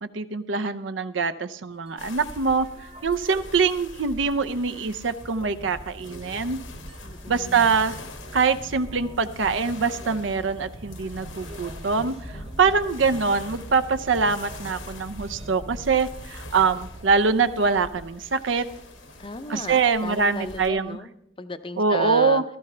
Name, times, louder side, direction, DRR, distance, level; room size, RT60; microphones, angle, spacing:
voice 1, 0.0-2.7 3.0-6.6 7.3-7.9 8.3-18.7 19.5-21.0 21.8-22.4, right 5 dB, 70° right, 12 dB, 0.6 m, -24 dB
sound 1, 1.8-21.0, right 1 dB, 30° right, 0.8 m, -44 dB
sound 2, 2.0-20.7, left 2 dB, 90° left, 1.7 m, -44 dB
voice 2, 7.0-7.8 12.3-12.8 19.2-22.4, left 2 dB, 25° left, 11 dB, 0.6 m, -35 dB
15.5 x 13.5 x 3.3 m, 0.76 s
head